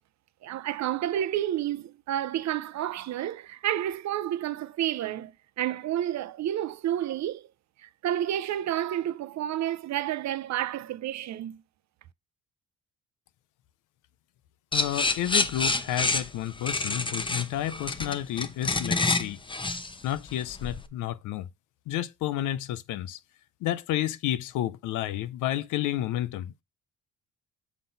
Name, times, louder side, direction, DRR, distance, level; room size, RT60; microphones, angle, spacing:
voice 1, 0.4-5.3 5.6-7.5 7.8-11.6, right 12 dB, 65° right, 0.6 m, -30 dB
voice 2, 14.7-19.4 20.0-21.5 21.9-23.2 23.6-26.6, left 13 dB, 90° left, 0.6 m, -31 dB
sound 1, 14.7-20.9, left 3 dB, 15° left, 0.8 m, -28 dB
7.2 x 3.9 x 3.9 m
cardioid pair, 90°, 30 cm